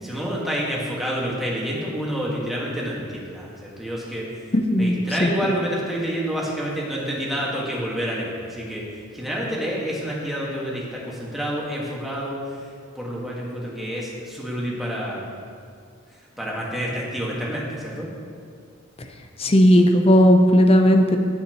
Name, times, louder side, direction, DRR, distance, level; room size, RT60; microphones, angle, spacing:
voice 1, 0.0-4.3 4.8-8.8 9.1-12.7 12.9-15.2 16.4-18.1, equal, ahead, -5 dB, 1.6 m, -28 dB
voice 2, 4.5-5.3 19.0-19.1 19.4-21.2, equal, 30° left, 5 dB, 0.6 m, -16 dB
16.0 x 5.6 x 3.0 m, 2.2 s
head